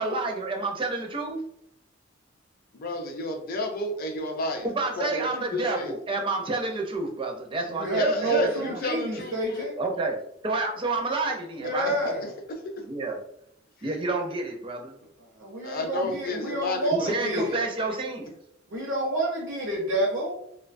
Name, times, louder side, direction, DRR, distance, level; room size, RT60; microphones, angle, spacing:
voice 1, 0.0-1.4 4.6-8.8 9.8-10.2 10.4-11.9 12.8-13.2 13.8-14.9 16.1-16.2 16.9-18.3, right 3 dB, 25° right, 2 dB, 0.4 m, -29 dB
voice 2, 2.7-4.7 5.0-6.0 7.9-9.6 11.9-12.3 15.6-17.7, left 1 dB, 50° left, 3 dB, 0.5 m, -31 dB
voice 3, 7.7-9.7 11.6-12.3 15.4-17.5 18.7-20.4, right 1 dB, 75° right, -4 dB, 0.6 m, -28 dB
2.6 x 2.2 x 2.5 m, 0.73 s
head